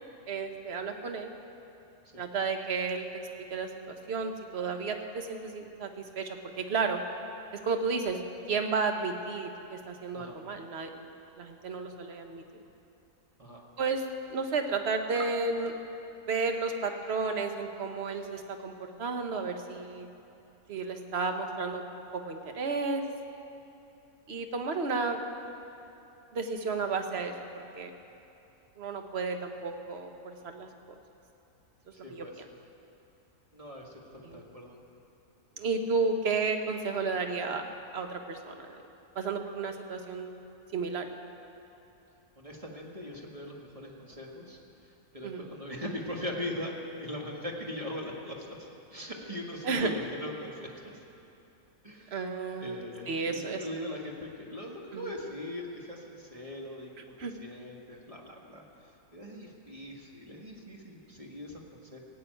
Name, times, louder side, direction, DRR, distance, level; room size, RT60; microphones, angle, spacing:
voice 1, 0.3-1.3 2.2-3.1 3.5-5.9 6.2-7.0 7.6-8.2 8.5-11.0 11.4-12.4 13.8-14.0 14.3-15.7 16.3-20.1 20.7-21.8 22.1-23.0 24.3-25.2 26.3-27.9 28.8-30.7 32.1-32.3 34.2-34.4 35.6-37.6 37.9-38.8 39.1-40.3 40.7-41.1 45.2-45.5 49.6-49.9 52.1-53.7 54.9-55.1 57.2-57.3, right 4 dB, 45° right, 5 dB, 1.2 m, -32 dB
voice 2, 31.9-32.4 33.5-34.8 42.3-50.7 51.8-52.2 52.6-62.0, left 1 dB, 25° right, -1 dB, 1.6 m, -41 dB
16.5 x 7.9 x 9.1 m, 2.8 s
omnidirectional pair, 1.7 m